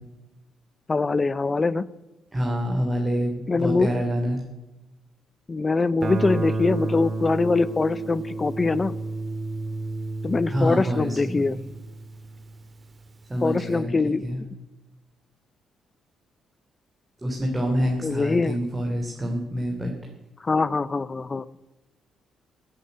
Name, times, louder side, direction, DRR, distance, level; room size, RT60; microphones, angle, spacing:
voice 1, 0.9-1.9 3.5-3.9 5.5-8.9 10.2-11.6 13.4-14.2 18.0-18.6 20.4-21.5, left 3 dB, 30° left, 18 dB, 0.6 m, -23 dB
voice 2, 2.3-4.4 10.5-11.4 13.3-13.9 14.2-14.4 17.2-19.9, equal, 15° right, 1 dB, 3.1 m, -26 dB
Guitar, 6.0-12.7, right 3 dB, 35° right, 1.9 m, -31 dB
15.0 x 8.6 x 9.9 m, 1.0 s
cardioid pair, 90°, 0 cm